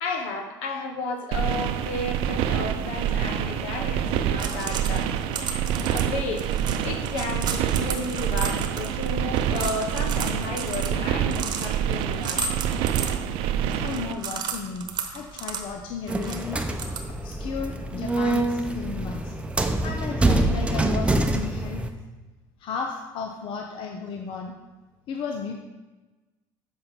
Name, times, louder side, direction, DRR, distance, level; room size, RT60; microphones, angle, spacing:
voice 1, 0.0-5.1 5.9-6.5 6.8-12.6, left 3 dB, 80° left, 5 dB, 1.3 m, -33 dB
sound 1, 1.3-14.1, right 9 dB, 70° right, 0.5 m, -27 dB
sound 2, 4.3-17.4, right 5 dB, 50° right, 1.0 m, -35 dB
voice 2, 13.7-16.6 17.1-19.3 19.8-21.8 22.6-24.5 25.1-25.5, left 5 dB, 60° left, 3 dB, 0.8 m, -34 dB
sound 3, 16.1-21.9, right 2 dB, 10° right, 0.7 m, -25 dB
7.6 x 5.6 x 5.9 m, 1.2 s
supercardioid pair, 100°, 10 cm